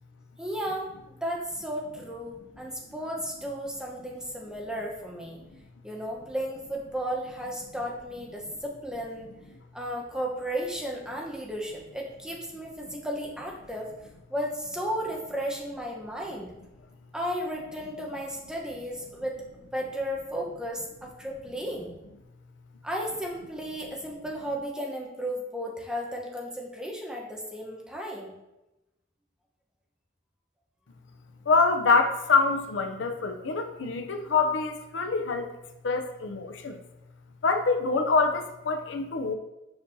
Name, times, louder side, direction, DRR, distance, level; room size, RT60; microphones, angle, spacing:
voice 1, 0.4-5.4 5.8-9.3 9.7-13.9 14.3-16.5 17.1-19.4 19.7-21.9 22.8-28.3, equal, 5° right, -2 dB, 0.8 m, -34 dB
voice 2, 31.5-35.5 35.8-36.8 37.4-39.3, left 4 dB, 65° left, 5 dB, 0.5 m, -25 dB
6.8 x 5.3 x 2.7 m, 0.96 s
head